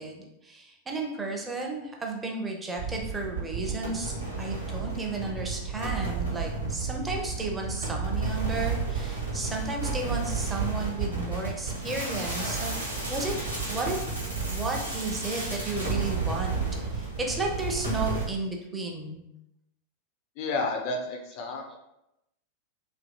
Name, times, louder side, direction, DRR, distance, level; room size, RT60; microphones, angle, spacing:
voice 1, 0.0-12.7 13.1-13.3 13.7-14.0 14.5-16.6 16.9-19.2, right 3 dB, 15° right, 0 dB, 0.5 m, -33 dB
sound 1, 2.8-18.2, right 4 dB, 80° right, 0.8 m, -32 dB
voice 2, 20.4-21.8, left 3 dB, 45° left, 3 dB, 0.3 m, -31 dB
2.7 x 2.5 x 2.2 m, 0.87 s
figure-of-eight pair, 90°, 0 cm